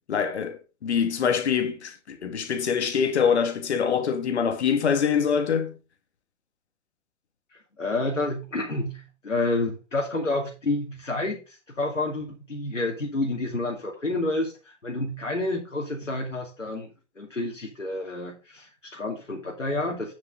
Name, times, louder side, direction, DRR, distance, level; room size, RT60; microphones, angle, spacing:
voice 1, 0.1-5.8, left 7 dB, 65° left, 2.3 m, -24 dB
voice 2, 7.5-16.9 17.2-20.1, left 2 dB, 85° left, 2.7 m, -29 dB
9.6 x 7.8 x 3.9 m
figure-of-eight pair, 105°, 37 cm